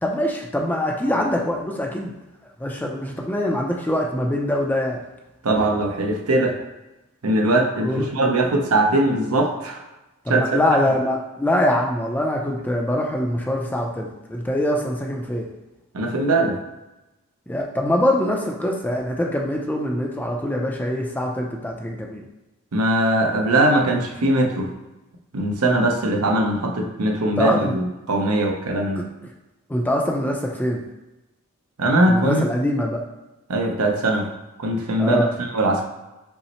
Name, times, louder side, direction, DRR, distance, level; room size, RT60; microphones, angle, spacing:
voice 1, 0.0-2.1 2.6-5.0 7.8-8.0 10.3-15.5 17.5-22.2 27.4-27.7 29.7-30.8 32.1-33.0 35.0-35.3, left 1 dB, 10° left, 0 dB, 0.4 m, -23 dB
voice 2, 5.4-6.5 7.2-9.8 10.3-10.4 15.9-16.6 22.7-24.7 25.3-29.0 31.8-32.4 33.5-34.3 34.6-35.9, right 1 dB, 80° right, 2 dB, 0.7 m, -20 dB
5.5 x 2.0 x 4.2 m, 1.0 s
head